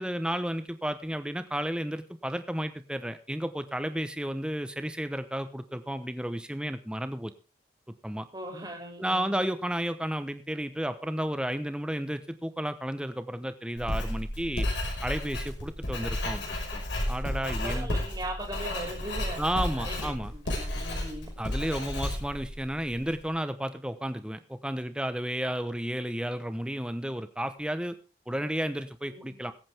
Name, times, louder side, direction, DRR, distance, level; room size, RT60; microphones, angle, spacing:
voice 1, 0.0-7.3 8.0-8.3 9.0-14.7 15.0-16.4 16.7-16.8 17.1-17.9 19.4-20.3 21.4-28.0 28.3-29.5, equal, 5° right, 11 dB, 0.9 m, -32 dB
voice 2, 8.3-9.4 17.4-19.4 19.7-21.4 29.0-29.4, right 1 dB, 20° right, 2 dB, 3.2 m, -39 dB
Writing, 13.8-23.2, left 1 dB, 80° left, 5.5 m, -32 dB
21.5 x 8.8 x 3.5 m, 0.32 s
head